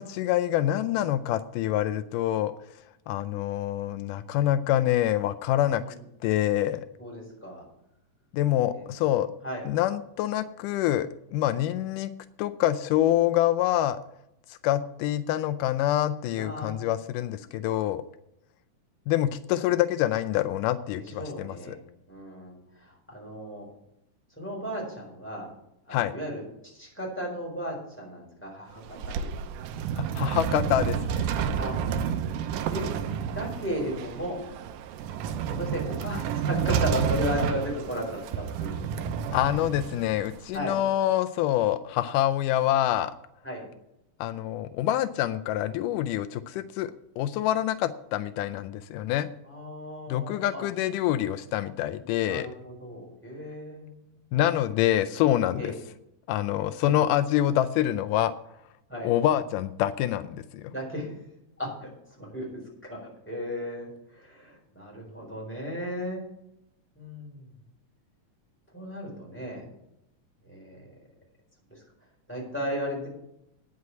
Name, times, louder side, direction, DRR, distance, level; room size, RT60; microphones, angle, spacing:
voice 1, 0.0-2.5 3.1-5.8 6.2-6.9 8.3-9.3 9.7-12.1 12.4-14.0 14.5-18.0 19.1-21.8 25.9-26.1 30.0-31.3 39.3-43.1 44.2-46.9 47.2-49.3 50.1-52.5 54.3-55.7 56.3-58.3 59.0-60.7, left 12 dB, 85° left, 11 dB, 2.1 m, -26 dB
voice 2, 7.0-7.6 8.7-8.8 9.4-9.6 16.3-16.7 21.0-21.8 22.1-23.7 24.4-25.5 25.9-29.3 31.5-31.8 32.7-32.9 33.3-34.4 35.6-38.8 40.5-40.8 43.4-43.6 49.4-50.6 52.3-54.0 55.5-55.7 56.8-56.9 58.9-59.1 60.7-61.2 61.6-61.9 62.2-62.5 62.9-66.2 67.0-67.5 68.7-69.7 70.4-70.9 71.7-71.8 72.3-73.1, equal, 5° left, -2 dB, 3.8 m, -35 dB
sound 1, 28.7-40.6, right 7 dB, 90° right, 2.2 m, -30 dB
9.4 x 6.3 x 8.3 m, 0.83 s
omnidirectional pair, 3.7 m